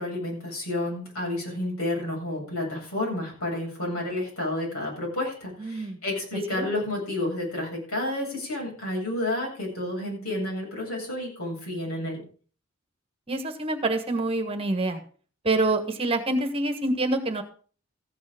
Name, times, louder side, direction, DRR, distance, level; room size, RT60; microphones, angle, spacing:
voice 1, 0.0-12.2, left 1 dB, 80° left, -2 dB, 7.9 m, -30 dB
voice 2, 5.6-6.0 6.5-6.7 13.3-15.0 15.4-17.4, right 2 dB, 25° right, 6 dB, 1.5 m, -26 dB
15.0 x 8.5 x 5.1 m, 0.41 s
head